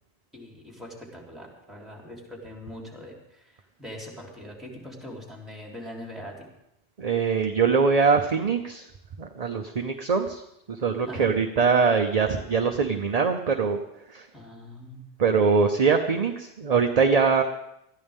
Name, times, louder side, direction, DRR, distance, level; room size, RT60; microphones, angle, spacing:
voice 1, 0.3-6.5 11.1-11.3 14.3-15.0, left 1 dB, ahead, -2 dB, 3.5 m, -42 dB
voice 2, 7.0-8.9 9.2-10.4 10.7-13.8 14.1-14.3 15.2-17.4, right 5 dB, 40° right, 5 dB, 0.8 m, -22 dB
20.0 x 13.5 x 3.6 m, 0.85 s
omnidirectional pair, 1.1 m